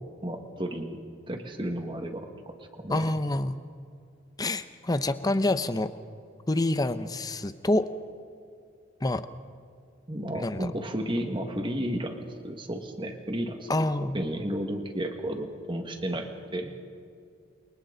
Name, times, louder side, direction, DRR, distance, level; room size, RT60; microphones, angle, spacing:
voice 1, 0.2-1.0 1.3-3.1 10.1-13.7 14.0-16.7, right 1 dB, 25° right, 5 dB, 1.8 m, -33 dB
voice 2, 2.9-3.6 4.4-5.9 6.5-7.9 9.0-9.2 10.3-10.7 13.7-14.2, left 2 dB, 20° left, 12 dB, 0.7 m, -27 dB
29.0 x 23.5 x 4.0 m, 2.4 s
head